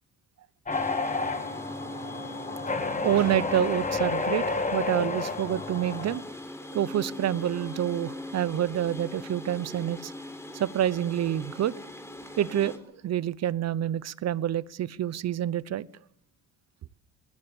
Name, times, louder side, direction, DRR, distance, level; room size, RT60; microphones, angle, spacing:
sound 1, 0.7-6.2, left 3 dB, 25° left, 2.7 m, -31 dB
sound 2, 0.7-12.8, left 1 dB, 10° left, 3.9 m, -41 dB
voice 1, 3.0-6.2 6.7-10.1 10.5-11.7 12.4-15.9, right 11 dB, 60° right, 20 dB, 0.8 m, -27 dB
21.0 x 18.5 x 7.1 m, 0.81 s
cardioid pair, 90°, 30 cm